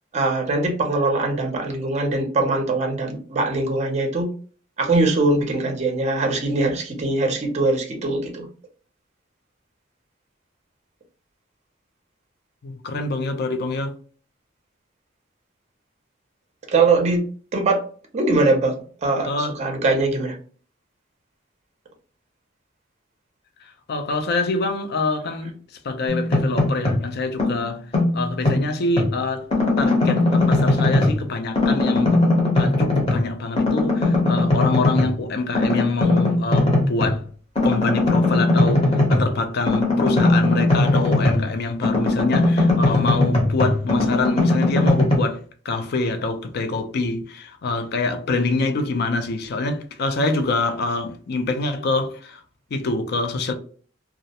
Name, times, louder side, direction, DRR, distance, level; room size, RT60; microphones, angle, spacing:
voice 1, 0.1-4.3 4.8-8.5 16.7-17.2 17.5-17.8 18.1-20.4, right 2 dB, 35° right, 0.5 m, -22 dB
voice 2, 12.6-14.0 19.3-19.5 23.9-25.6 25.8-27.9 28.1-29.5 29.8-32.2 32.5-37.2 37.6-52.4 52.7-53.5, left 3 dB, 55° left, 0.4 m, -25 dB
sound 1, 26.1-27.1 27.4-29.1 29.5-31.3 31.5-33.3 33.6-35.1 35.5-37.2 37.5-41.5 41.8-45.2, left 2 dB, 30° left, 0.7 m, -19 dB
2.4 x 2.0 x 2.7 m
head